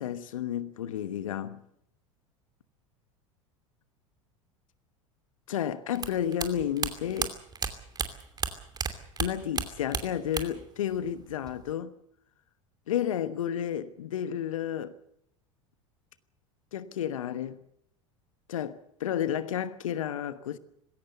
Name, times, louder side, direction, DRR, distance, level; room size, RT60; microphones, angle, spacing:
voice 1, 0.0-1.6 5.5-7.3 9.2-12.0 12.9-15.0 16.7-17.6 18.5-20.6, left 10 dB, 75° left, 1.2 m, -31 dB
sound 1, 6.0-8.9 9.2-10.7 10.9-11.7, right 5 dB, 25° right, 2.7 m, -32 dB
20.5 x 17.0 x 8.1 m
figure-of-eight pair, 80°, 17 cm